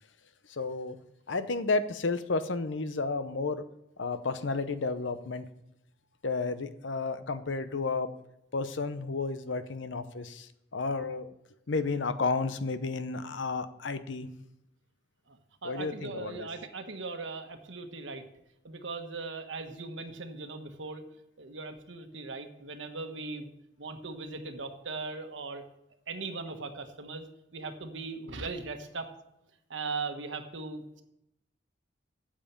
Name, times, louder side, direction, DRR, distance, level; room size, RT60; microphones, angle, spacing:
voice 1, 0.5-1.0 1.3-3.6 4.0-5.5 6.2-8.1 8.5-11.3 11.7-14.3 15.6-16.5, left 3 dB, 80° left, 12 dB, 0.8 m, -32 dB
voice 2, 15.3-18.2 18.6-21.0 21.4-23.5 23.8-25.6 26.1-27.3 27.5-29.1 29.7-31.0, right 3 dB, 80° right, 6 dB, 1.3 m, -39 dB
8.8 x 7.5 x 7.2 m, 0.82 s
head